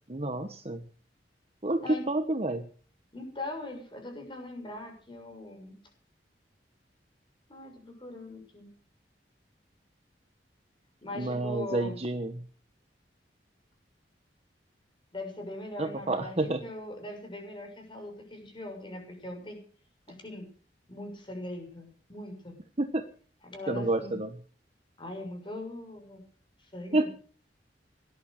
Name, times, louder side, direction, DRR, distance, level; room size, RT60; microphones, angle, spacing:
voice 1, 0.1-0.8 1.6-2.6 11.1-12.4 15.8-16.6 22.8-23.0 23.7-24.3 26.9-27.1, right 2 dB, 35° right, 7 dB, 1.2 m, -29 dB
voice 2, 3.1-5.8 7.5-8.7 11.0-12.0 15.1-19.6 20.1-20.5 20.9-22.6 23.4-24.2 25.0-26.2 26.6-27.1, left 1 dB, 30° left, 3 dB, 6.7 m, -41 dB
18.0 x 11.5 x 6.7 m, 0.44 s
head